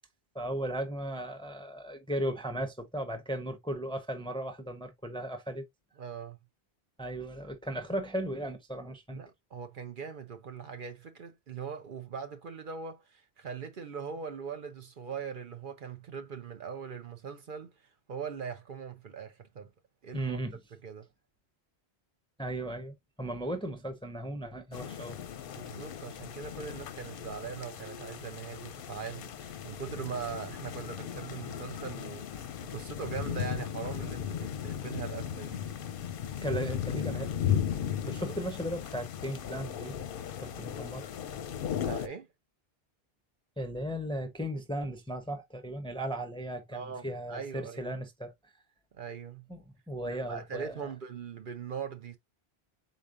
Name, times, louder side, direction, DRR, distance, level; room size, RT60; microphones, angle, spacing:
voice 1, 0.3-5.7 7.0-9.2 20.1-20.6 22.4-25.2 36.4-37.6 38.1-40.0 40.4-41.1 43.6-48.5 49.5-49.6 49.9-50.9, right 1 dB, 5° left, 0.6 m, -36 dB
voice 2, 6.0-6.4 9.1-19.7 20.0-20.4 20.8-21.1 25.5-35.7 38.0-38.2 41.7-42.3 46.7-47.9 48.9-49.5 50.0-52.2, right 6 dB, 55° right, 0.8 m, -41 dB
sound 1, 24.7-42.1, left 9 dB, 60° left, 0.7 m, -36 dB
5.0 x 4.1 x 2.4 m
omnidirectional pair, 1.1 m